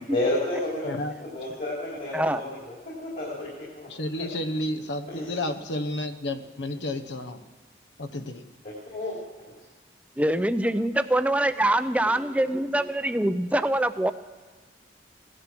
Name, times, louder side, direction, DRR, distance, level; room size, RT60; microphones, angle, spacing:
voice 1, 0.1-0.9 1.2-3.9 4.2-4.3 5.1-5.3 8.6-9.5, left 1 dB, 50° left, -4 dB, 3.3 m, -31 dB
voice 2, 0.8-1.1 3.9-7.4 8.0-8.4, left 1 dB, 80° left, 9 dB, 1.0 m, -31 dB
voice 3, 10.2-14.1, right 1 dB, 5° right, 11 dB, 0.5 m, -24 dB
17.0 x 11.0 x 6.1 m, 1.4 s
head